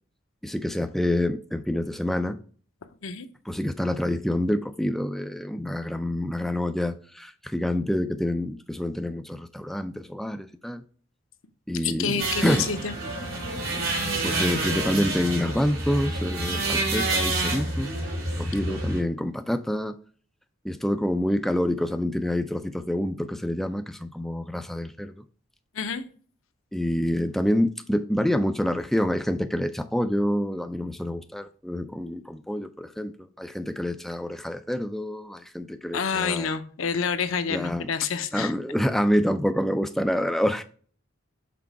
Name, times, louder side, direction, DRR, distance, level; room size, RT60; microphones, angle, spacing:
voice 1, 0.4-2.4 3.5-10.8 11.7-12.6 13.7-17.9 18.4-20.0 20.6-25.2 26.7-33.1 33.4-36.5 37.5-37.9 38.3-40.6, left 1 dB, ahead, 0.3 m, -27 dB
voice 2, 11.8-12.9 18.7-18.9 25.7-26.0 35.9-38.5, left 6 dB, 75° left, 0.7 m, -28 dB
sound 1, 12.2-19.0, right 2 dB, 80° right, 3.5 m, -28 dB
6.0 x 4.4 x 4.6 m
head